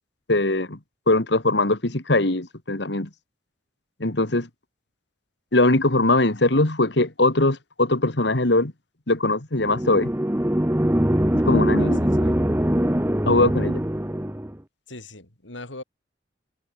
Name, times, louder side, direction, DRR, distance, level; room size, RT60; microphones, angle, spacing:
voice 1, 0.3-0.8 1.1-3.1 4.0-4.5 5.5-8.7 9.1-10.1 11.3-12.0 13.3-13.8, left 2 dB, 65° left, 2.1 m, -21 dB
sound 1, 9.6-14.5, equal, 10° right, 1.2 m, -22 dB
voice 2, 11.8-12.4 14.9-15.8, left 2 dB, 80° left, 5.1 m, -40 dB
head